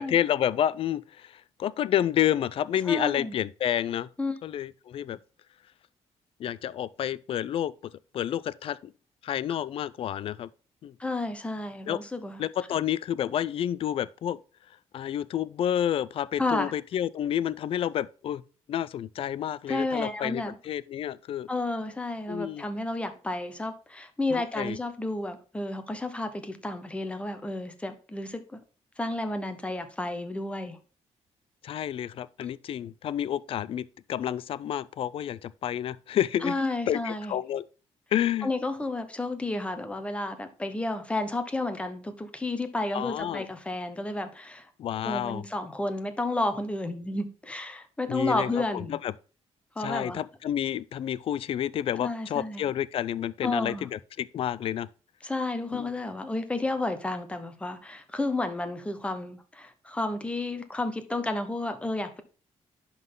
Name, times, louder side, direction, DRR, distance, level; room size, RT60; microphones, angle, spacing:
voice 1, 0.0-4.1 4.4-5.2 6.4-8.9 9.2-10.5 10.8-10.9 11.9-12.0 12.4-14.4 14.9-18.4 18.7-21.5 22.3-22.7 24.3-24.8 31.6-36.6 36.9-37.7 38.1-38.5 42.9-43.5 44.8-45.4 48.1-49.1 49.8-54.9 55.7-55.9, left 10 dB, 50° left, 0.4 m, -29 dB
voice 2, 2.9-3.4 4.2-4.4 11.0-12.4 16.4-16.7 19.7-20.5 21.5-28.6 29.0-30.8 32.4-32.5 36.4-37.3 38.4-44.7 45.0-49.0 49.8-50.2 52.0-52.7 53.4-53.9 55.2-62.2, left 2 dB, 10° left, 0.9 m, -31 dB
11.0 x 4.0 x 3.7 m
cardioid pair, 150°, 12 cm